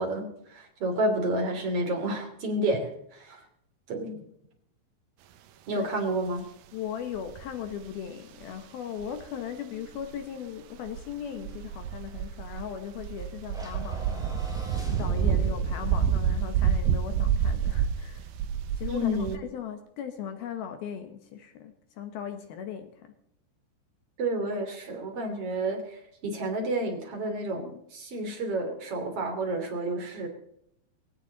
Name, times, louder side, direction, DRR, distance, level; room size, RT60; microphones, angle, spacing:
voice 1, 0.0-3.4 3.9-4.2 5.7-6.5 18.9-19.4 24.2-30.3, right 1 dB, 35° right, 3 dB, 3.4 m, -30 dB
voice 2, 6.7-14.4 15.0-18.3 18.7-23.1, left 8 dB, 70° left, 8 dB, 2.6 m, -38 dB
sound 1, 7.2-7.9 9.0-9.2 10.0-10.2 10.9-19.4, right 8 dB, 80° right, 2.1 m, -28 dB
sound 2, 13.5-17.9, left 3 dB, ahead, 4.7 m, -40 dB
19.0 x 17.0 x 4.0 m, 0.74 s
omnidirectional pair, 5.3 m